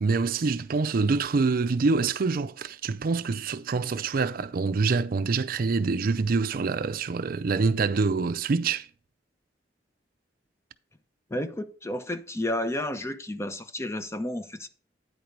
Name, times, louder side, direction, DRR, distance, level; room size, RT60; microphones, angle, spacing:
voice 1, 0.0-8.9, right 4 dB, 55° right, 0.5 m, -26 dB
voice 2, 11.3-14.7, left 1 dB, 15° left, 0.6 m, -31 dB
9.5 x 4.6 x 5.2 m
head